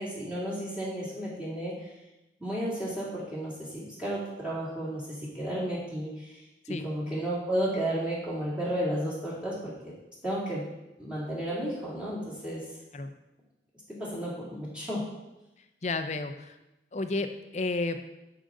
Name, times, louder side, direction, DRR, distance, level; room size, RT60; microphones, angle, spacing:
voice 1, 0.0-1.9 2.4-6.4 6.8-9.7 10.2-10.6 11.0-12.6 14.0-15.0, right 1 dB, 5° right, -8 dB, 2.4 m, -33 dB
voice 2, 15.8-16.5 16.9-18.0, left 3 dB, 40° left, 8 dB, 0.5 m, -31 dB
12.0 x 5.0 x 3.8 m, 0.96 s
head